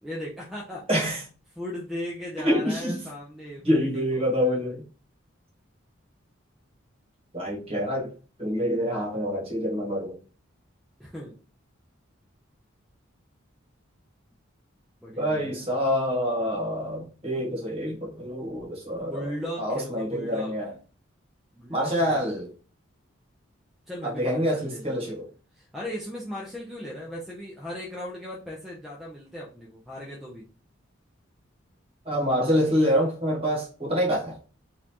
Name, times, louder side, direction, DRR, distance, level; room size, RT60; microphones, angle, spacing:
voice 1, 0.0-1.1 1.6-4.8 11.0-11.4 15.0-15.7 19.0-20.6 21.5-22.4 23.9-25.1 25.5-30.5, equal, ahead, 0.6 m, -38 dB
voice 2, 0.9-1.2 2.4-3.0 3.6-4.8 7.3-8.1 8.4-10.2 15.2-19.3 19.6-20.7 21.7-22.5 24.0-25.3 32.0-34.4, equal, 30° right, 1.4 m, -26 dB
4.0 x 2.6 x 2.9 m
head